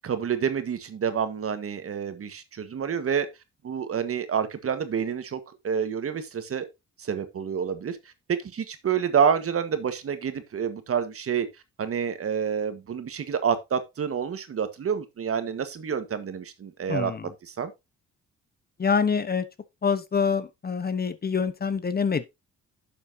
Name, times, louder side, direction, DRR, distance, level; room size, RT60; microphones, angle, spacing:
voice 1, 0.0-3.3 3.6-6.6 7.0-8.0 8.3-11.5 11.8-17.1 17.4-17.7, right 7 dB, 50° right, 1.6 m, -28 dB
voice 2, 16.9-17.3 18.8-19.5 19.8-22.3, left 6 dB, 30° left, 1.1 m, -26 dB
11.0 x 7.1 x 2.8 m
cardioid pair, 90°, 30 cm